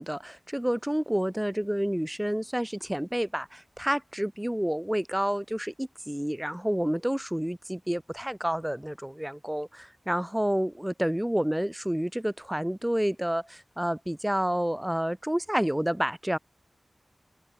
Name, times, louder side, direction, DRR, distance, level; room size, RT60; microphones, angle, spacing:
voice 1, 0.0-16.4, equal, 10° right, 6.5 m, -29 dB
wide cardioid pair, 70°, 0 cm